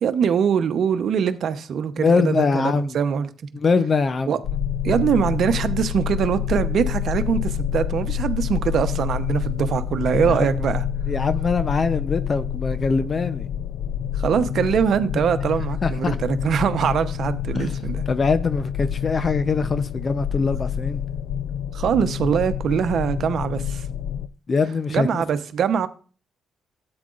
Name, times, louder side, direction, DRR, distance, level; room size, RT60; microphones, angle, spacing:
voice 1, 0.0-3.3 4.3-4.4 4.8-10.8 14.1-18.0 21.7-23.9 24.9-25.9, right 7 dB, 65° right, 0.9 m, -23 dB
voice 2, 2.0-3.0 3.5-4.4 10.3-10.5 11.1-13.5 15.8-16.2 17.5-17.8 18.1-21.0 24.5-25.2, left 4 dB, 40° left, 0.6 m, -22 dB
sound 1, 4.4-24.3, left 9 dB, 80° left, 0.5 m, -27 dB
13.0 x 8.8 x 2.5 m
cardioid pair, 90°, 0 cm